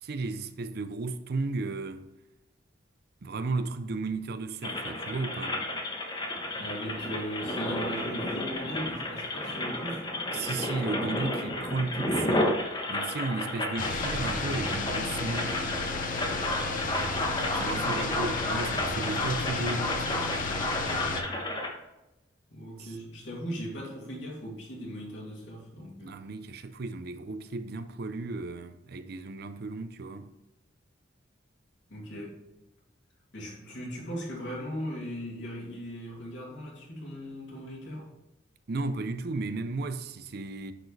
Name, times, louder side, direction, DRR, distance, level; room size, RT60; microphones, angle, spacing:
voice 1, 0.0-2.1 3.2-5.6 10.3-12.5 12.9-15.7 17.6-20.4 22.8-22.9 26.0-30.3 38.7-40.7, right 3 dB, 55° right, 0.5 m, -34 dB
sound 1, 4.6-21.7, left 1 dB, 25° left, 1.0 m, -32 dB
voice 2, 6.5-10.0 17.5-18.2 22.5-26.2 31.9-32.4 33.3-38.1, equal, 75° left, 2.7 m, -38 dB
sound 2, 13.8-21.2, left 3 dB, 45° left, 0.7 m, -33 dB
9.9 x 4.7 x 3.3 m
head